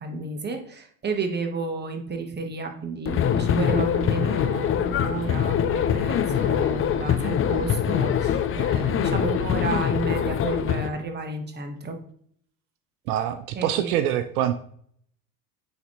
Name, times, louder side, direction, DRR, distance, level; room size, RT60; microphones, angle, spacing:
voice 1, 0.0-12.0 13.5-13.9, right 3 dB, 25° right, 5 dB, 1.4 m, -31 dB
sound 1, 3.0-10.9, left 9 dB, 30° left, 0.6 m, -24 dB
voice 2, 13.1-14.6, right 11 dB, 75° right, 10 dB, 0.7 m, -25 dB
9.3 x 4.1 x 3.2 m, 0.62 s
hypercardioid pair, 90°, 45 cm